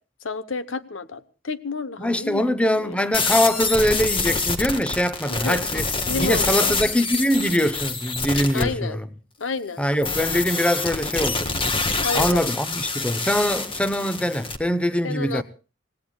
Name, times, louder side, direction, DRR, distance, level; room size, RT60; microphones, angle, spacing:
voice 1, 0.2-3.0 5.3-5.6 6.1-6.7 8.5-9.0 9.4-9.9 12.0-12.5 15.0-15.4, left 4 dB, 85° left, 1.0 m, -30 dB
voice 2, 2.0-5.9 6.2-9.1 9.8-11.5 12.1-15.4, equal, 5° left, 0.7 m, -23 dB
sound 1, 3.1-8.7 10.0-14.6, left 3 dB, 25° left, 1.4 m, -26 dB
25.5 x 18.0 x 2.3 m
head